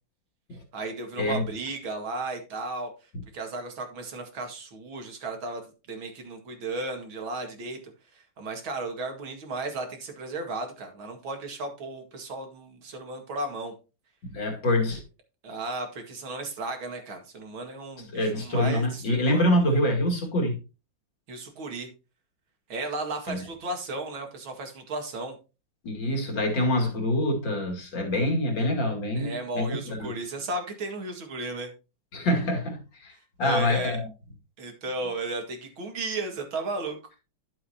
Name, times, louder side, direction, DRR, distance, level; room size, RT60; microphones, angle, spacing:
voice 1, 0.7-2.9 3.3-5.6 5.9-7.8 8.1-13.7 15.4-19.8 21.3-21.9 22.7-25.3 29.2-31.7 33.4-34.0 34.6-37.0, right 2 dB, 85° right, 2.9 m, -34 dB
voice 2, 14.2-15.0 18.1-20.6 23.3-23.4 25.8-30.1 32.1-34.1, left 1 dB, 65° left, 3.0 m, -26 dB
11.5 x 7.8 x 2.9 m
omnidirectional pair, 2.1 m